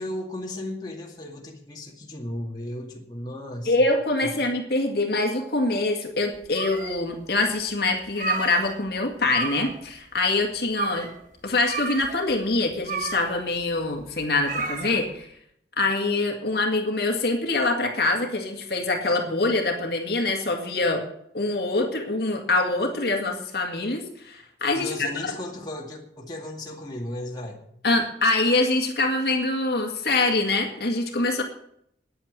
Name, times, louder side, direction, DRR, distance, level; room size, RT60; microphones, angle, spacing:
voice 1, 0.0-3.8 4.2-4.5 24.7-27.6, left 1 dB, 20° left, -1 dB, 2.2 m, -35 dB
voice 2, 3.7-11.1 11.4-15.3 15.8-21.0 21.3-25.3 27.8-31.4, left 2 dB, 60° left, 2 dB, 2.0 m, -24 dB
sound 1, 6.3-7.2 7.6-7.7 8.0-9.0 9.2-9.9 10.2-10.3 10.7-11.2 11.6-15.2, right 4 dB, 45° right, 1.3 m, -32 dB
10.0 x 9.0 x 8.7 m, 0.70 s
head